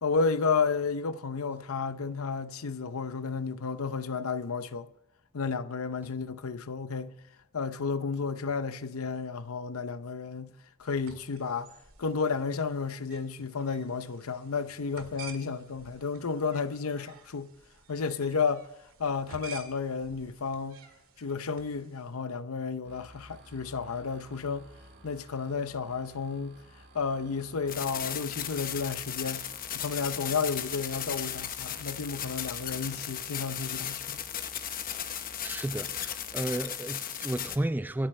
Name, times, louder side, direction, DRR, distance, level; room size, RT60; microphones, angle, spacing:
voice 1, 0.0-4.9 5.3-7.2 7.5-11.7 12.0-17.5 17.9-18.7 19.0-20.8 21.2-24.7 25.0-26.6 26.9-34.2, left 5 dB, 80° left, 0.7 m, -32 dB
sound 1, 10.8-22.1, right 5 dB, 75° right, 1.9 m, -51 dB
sound 2, 22.8-36.4, right 1 dB, 60° right, 3.6 m, -54 dB
sound 3, 27.7-37.6, left 9 dB, 40° left, 0.9 m, -36 dB
voice 2, 35.4-38.1, right 1 dB, 10° right, 0.4 m, -33 dB
25.5 x 8.8 x 3.3 m
head